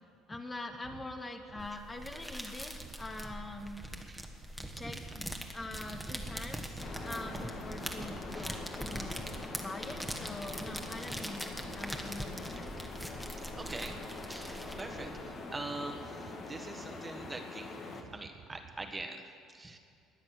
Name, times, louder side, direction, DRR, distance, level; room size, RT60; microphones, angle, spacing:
voice 1, 0.3-3.8 4.7-6.8 7.0-9.3 9.6-12.7, left 2 dB, 25° left, 4 dB, 1.4 m, -44 dB
sound 1, 0.8-19.1, right 7 dB, 50° right, 0.6 m, -53 dB
sound 2, 1.6-15.2, equal, ahead, 1.7 m, -43 dB
sound 3, 6.8-18.0, left 3 dB, 50° left, 1.9 m, -44 dB
voice 2, 13.6-14.0 14.3-17.8 18.1-19.2 19.5-19.8, right 2 dB, 20° right, 5 dB, 1.6 m, -43 dB
21.5 x 7.6 x 6.5 m, 2.5 s
hypercardioid pair, 65°, 0 cm